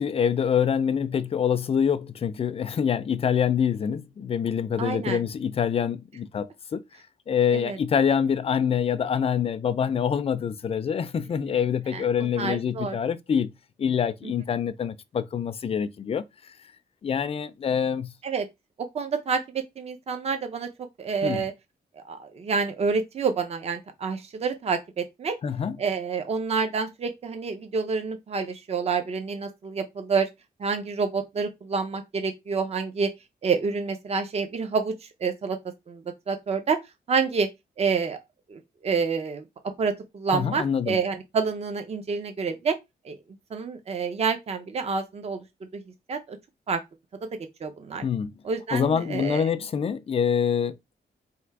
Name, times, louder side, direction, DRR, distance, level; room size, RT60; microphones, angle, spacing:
voice 1, 0.0-6.8 7.3-13.5 13.8-16.2 17.0-18.1 21.2-21.4 25.4-25.8 40.3-41.0 48.0-48.3 48.7-50.9, left 7 dB, 35° left, 0.4 m, -25 dB
voice 2, 4.8-5.2 7.5-7.8 11.5-11.6 11.9-12.0 12.4-13.0 14.2-14.3 18.2-18.5 18.8-20.7 21.0-21.5 22.0-25.4 25.8-30.3 30.6-33.1 33.4-35.6 35.9-36.8 37.1-37.5 37.8-38.2 38.5-42.8 43.0-43.2 43.5-45.4 45.7-45.8 46.1-46.4 46.7-46.8 47.6-48.0 48.4-49.4, right 5 dB, 40° right, 0.6 m, -28 dB
3.5 x 2.7 x 4.5 m
wide cardioid pair, 155°, 17 cm